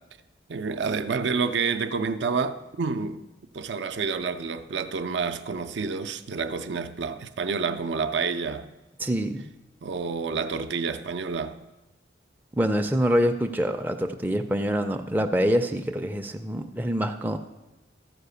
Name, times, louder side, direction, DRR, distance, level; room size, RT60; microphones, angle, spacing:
voice 1, 0.5-3.2 3.5-8.7 9.8-11.6, right 5 dB, 70° right, 0.5 m, -29 dB
voice 2, 9.0-9.5 12.5-17.4, equal, 10° right, 0.4 m, -25 dB
13.5 x 4.9 x 6.7 m
head